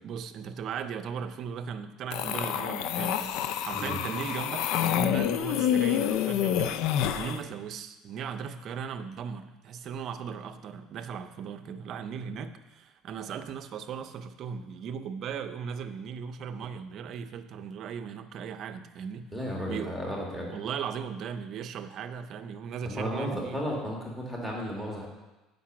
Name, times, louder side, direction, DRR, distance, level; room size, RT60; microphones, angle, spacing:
voice 1, 0.0-6.8 7.1-19.3 19.7-20.0 20.5-23.6, right 7 dB, 45° right, 8 dB, 0.6 m, -37 dB
sound 1, 2.1-7.4, left 10 dB, 65° left, 0.4 m, -28 dB
voice 2, 3.7-4.0 19.3-20.5 22.8-25.1, equal, 5° left, -3 dB, 1.6 m, -34 dB
8.4 x 5.2 x 5.9 m, 1.1 s
cardioid pair, 140°, 0 cm